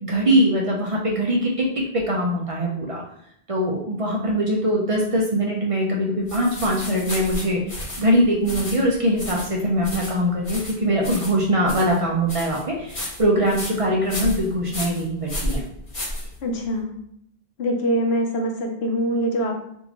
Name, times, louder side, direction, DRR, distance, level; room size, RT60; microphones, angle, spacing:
voice 1, 0.0-1.7 1.9-3.0 3.5-15.6, equal, 40° right, -2 dB, 0.5 m, -22 dB
sound 1, 6.3-16.7, left 1 dB, 35° left, 0.9 m, -33 dB
voice 2, 16.4-17.0 17.6-19.5, equal, 85° left, 2 dB, 0.9 m, -24 dB
3.6 x 2.5 x 2.9 m, 0.71 s
omnidirectional pair, 1.0 m